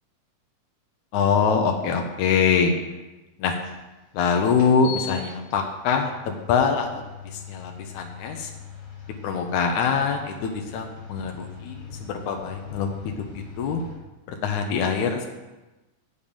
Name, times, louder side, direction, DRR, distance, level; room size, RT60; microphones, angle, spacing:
voice 1, 1.1-2.7 3.4-3.6 4.1-6.9 7.3-8.5 9.2-13.8 14.3-15.3, left 6 dB, 90° left, 3 dB, 2.2 m, -24 dB
sound 1, 3.6-3.7 4.5-13.9, left 7 dB, 55° left, 3.1 m, -41 dB
8.2 x 7.2 x 5.2 m, 1.1 s
omnidirectional pair, 3.3 m